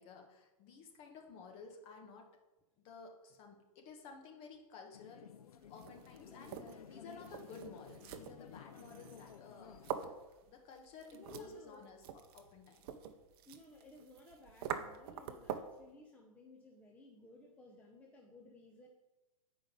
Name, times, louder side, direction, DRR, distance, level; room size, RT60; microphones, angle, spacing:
voice 1, 0.0-2.3 2.8-5.3 5.7-10.1 10.4-12.0 12.3-12.9, left 4 dB, 35° left, 3 dB, 1.4 m, -54 dB
sound 1, 4.9-10.0, left 8 dB, 80° left, 0.7 m, -55 dB
sound 2, 5.6-15.8, right 8 dB, 40° right, 0.7 m, -47 dB
voice 2, 6.3-6.6 11.1-11.9 13.4-18.9, left 2 dB, 10° left, 0 dB, 0.7 m, -58 dB
9.2 x 5.1 x 5.3 m, 1.1 s
hypercardioid pair, 140°, 19 cm